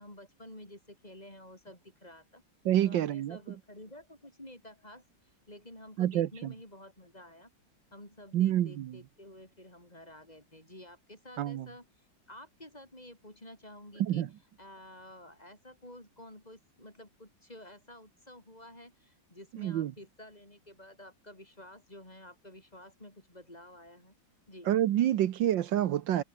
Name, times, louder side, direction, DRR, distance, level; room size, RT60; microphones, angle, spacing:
voice 1, 0.0-2.4 2.8-5.0 5.5-7.5 7.9-14.3 14.6-24.1 24.5-24.7, left 1 dB, 20° left, 6.0 m, -51 dB
voice 2, 2.6-3.4 6.0-6.5 8.3-9.0 11.4-11.7 14.0-14.3 19.6-19.9 24.7-26.2, right 12 dB, 75° right, 1.6 m, -27 dB
omnidirectional pair, 2.1 m